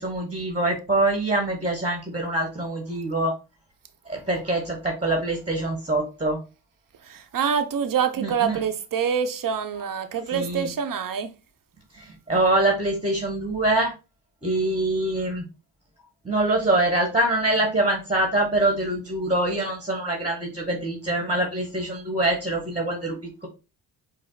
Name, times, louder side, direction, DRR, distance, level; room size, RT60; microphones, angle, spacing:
voice 1, 0.0-3.3 4.1-6.4 8.2-8.6 10.3-10.7 11.9-13.9 14.4-15.4 16.2-23.5, right 2 dB, 15° right, 1.4 m, -24 dB
voice 2, 7.1-11.3, right 7 dB, 45° right, 0.8 m, -26 dB
5.0 x 2.0 x 3.8 m
supercardioid pair, 50°, 45 cm